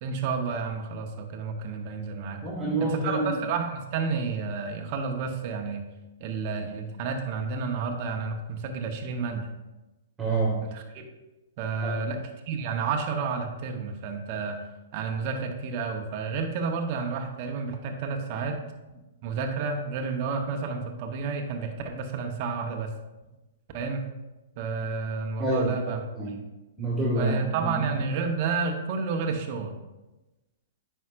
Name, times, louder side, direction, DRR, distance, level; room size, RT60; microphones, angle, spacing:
voice 1, 0.0-2.4 2.8-5.9 6.2-9.5 10.6-11.1 11.6-12.2 12.5-14.6 14.9-18.6 19.2-22.9 23.7-24.0 24.6-26.0 27.1-29.7, right 5 dB, 45° right, 3 dB, 1.0 m, -30 dB
voice 2, 2.4-3.3 10.2-10.6 11.8-12.1 25.4-26.3 26.8-27.3 27.6-27.8, right 2 dB, 15° right, -6 dB, 1.9 m, -27 dB
9.4 x 5.6 x 2.5 m, 1.1 s
hypercardioid pair, 120°, 0 cm